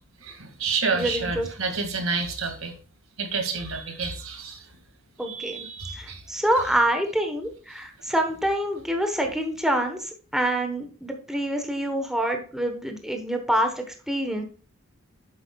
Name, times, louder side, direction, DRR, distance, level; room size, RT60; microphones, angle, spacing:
voice 1, 0.2-2.7 3.2-4.6 5.3-6.2, right 4 dB, 75° right, 5 dB, 2.0 m, -29 dB
voice 2, 0.9-1.5 5.2-5.7 6.0-10.1 10.3-14.4, right 1 dB, ahead, 3 dB, 1.0 m, -26 dB
9.2 x 7.6 x 2.3 m, 0.39 s
head